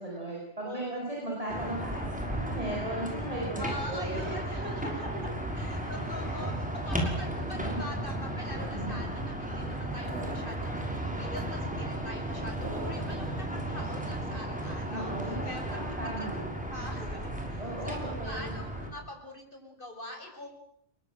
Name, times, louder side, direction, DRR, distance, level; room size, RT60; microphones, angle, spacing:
voice 1, 0.0-2.0 2.3-4.3 4.6-5.4 5.9-6.4 7.5-7.8 8.7-9.0 14.9-16.5 17.6-18.5, right 1 dB, 30° right, -3 dB, 8.0 m, -37 dB
voice 2, 0.6-1.0 3.6-16.4 16.7-20.5, left 1 dB, 50° left, 3 dB, 6.7 m, -43 dB
sound 1, 1.5-18.9, right 1 dB, 5° right, 6.1 m, -34 dB
sound 2, 10.1-11.0 12.6-13.6, right 2 dB, 75° right, 2.6 m, -42 dB
29.5 x 23.5 x 7.9 m, 0.67 s
omnidirectional pair, 1.1 m